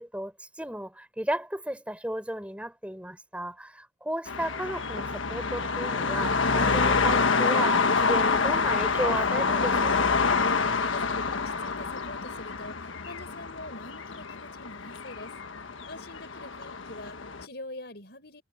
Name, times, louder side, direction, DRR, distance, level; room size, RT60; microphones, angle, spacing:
voice 1, 0.0-10.1, right 1 dB, 5° right, 4.4 m, -34 dB
sound 1, 4.3-17.4, left 4 dB, 80° left, 1.4 m, -27 dB
voice 2, 10.9-15.3 15.9-18.4, left 2 dB, 55° left, 6.3 m, -44 dB
head